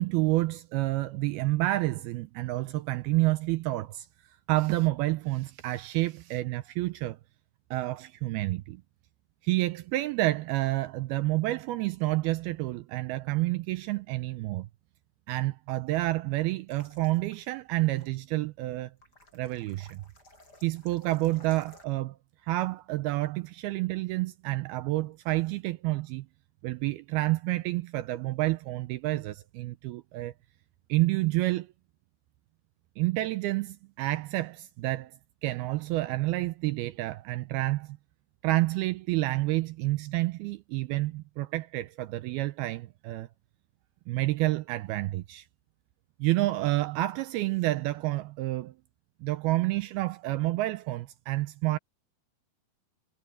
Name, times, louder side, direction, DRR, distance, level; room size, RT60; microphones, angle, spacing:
voice 1, 0.0-4.1 4.5-7.2 7.7-8.8 9.4-14.7 15.3-18.9 19.3-20.0 20.6-22.2 22.4-26.3 26.6-30.3 30.9-31.7 33.0-35.1 35.4-38.0 38.4-43.3 44.1-45.5 46.2-48.7 49.2-51.8, right 18 dB, 80° right, 2.4 m, -29 dB
sound 1, 16.7-17.4 17.9-18.1 19.0-21.8, left 2 dB, 25° left, 6.4 m, -57 dB
omnidirectional pair, 4.8 m